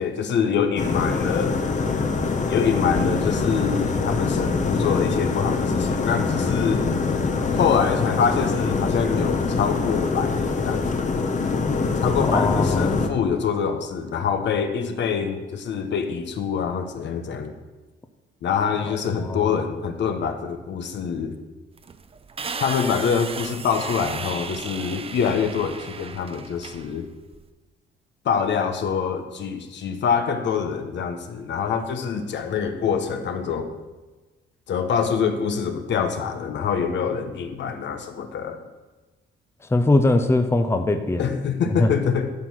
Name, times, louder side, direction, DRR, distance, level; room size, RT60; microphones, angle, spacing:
voice 1, 0.0-1.6 2.5-6.9 7.5-11.2 12.0-17.5 18.4-21.4 22.6-27.0 28.2-33.7 34.7-38.6 41.2-42.3, left 6 dB, 65° left, 7 dB, 1.0 m, -25 dB
sound 1, 0.8-13.1, left 4 dB, 40° left, 1.0 m, -24 dB
voice 2, 12.3-13.0 18.9-19.0 19.2-19.5 39.7-41.3 41.7-41.9, left 2 dB, 15° left, 7 dB, 0.7 m, -21 dB
sound 2, 21.8-27.4, right 5 dB, 30° right, 0.6 m, -35 dB
11.5 x 4.5 x 6.3 m, 1.2 s
cardioid pair, 90°, 20 cm